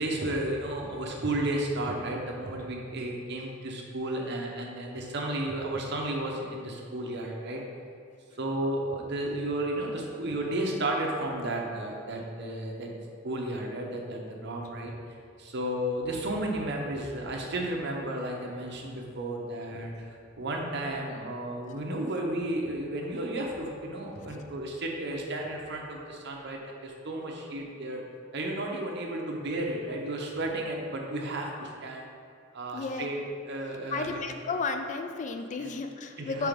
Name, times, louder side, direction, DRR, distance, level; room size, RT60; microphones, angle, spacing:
voice 1, 0.0-7.6 8.4-12.9 13.2-14.9 15.4-20.1 20.4-28.0 28.3-32.1 32.5-33.2 33.5-34.2 35.6-35.7 36.2-36.5, right 1 dB, 60° right, 0 dB, 0.9 m, -33 dB
voice 2, 32.7-33.1 33.9-36.5, left 4 dB, 40° left, 6 dB, 0.4 m, -33 dB
4.8 x 4.7 x 5.2 m, 2.3 s
head